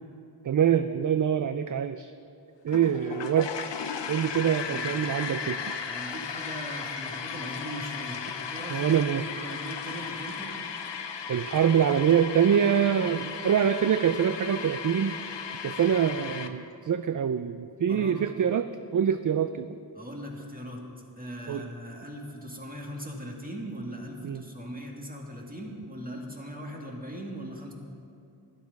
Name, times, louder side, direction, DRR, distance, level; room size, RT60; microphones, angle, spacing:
voice 1, 0.4-2.1 2.6-3.5 4.1-5.7 8.7-9.3 11.3-15.1 15.6-19.8 21.5-21.7 24.2-24.4, right 8 dB, 50° right, 11 dB, 0.4 m, -25 dB
toilet flash, 2.7-16.5, left 6 dB, 85° left, 0.8 m, -36 dB
voice 2, 5.9-10.5 17.9-18.2 19.9-20.9 21.2-27.7, equal, 20° right, 0 dB, 2.0 m, -39 dB
11.5 x 11.5 x 5.3 m, 2.5 s
wide cardioid pair, 65°, 42 cm